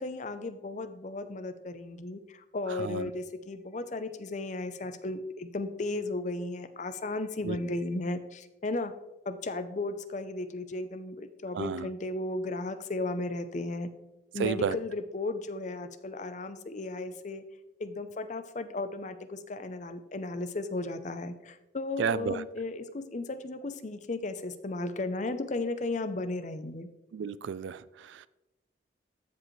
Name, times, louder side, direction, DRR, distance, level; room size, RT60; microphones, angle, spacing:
voice 1, 0.0-8.9 9.3-13.9 14.3-17.4 17.8-26.9, left 2 dB, 40° left, 11 dB, 0.5 m, -35 dB
voice 2, 2.7-3.1 7.4-7.6 11.5-11.9 14.4-14.8 22.0-22.5 27.1-28.3, right 6 dB, 70° right, 17 dB, 0.3 m, -32 dB
13.5 x 5.0 x 3.1 m, 0.98 s
head